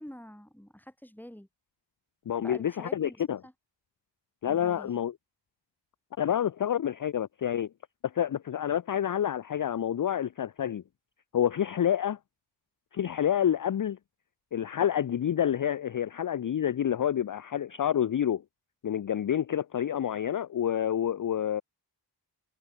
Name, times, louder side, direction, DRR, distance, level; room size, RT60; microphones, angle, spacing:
voice 1, 0.0-1.5 2.4-3.5 4.5-4.9, equal, 5° left, 2.5 m, -46 dB
voice 2, 2.3-3.4 4.4-5.1 6.2-7.7 8.1-10.8 11.3-12.2 12.9-14.0 14.5-18.4 18.8-21.6, left 10 dB, 50° left, 0.4 m, -28 dB
wide cardioid pair, 70°, 44 cm